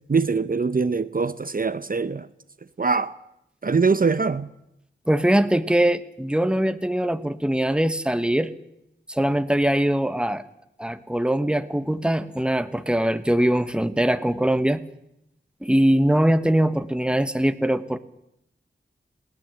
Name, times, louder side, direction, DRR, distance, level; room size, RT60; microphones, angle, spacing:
voice 1, 0.1-2.3 2.8-3.1 3.6-4.5, right 4 dB, 45° right, 0.8 m, -23 dB
voice 2, 5.1-8.5 9.1-10.4 10.8-14.8 15.6-18.0, right 1 dB, 5° right, 1.2 m, -22 dB
20.5 x 17.0 x 7.8 m
wide cardioid pair, 50°, 20 cm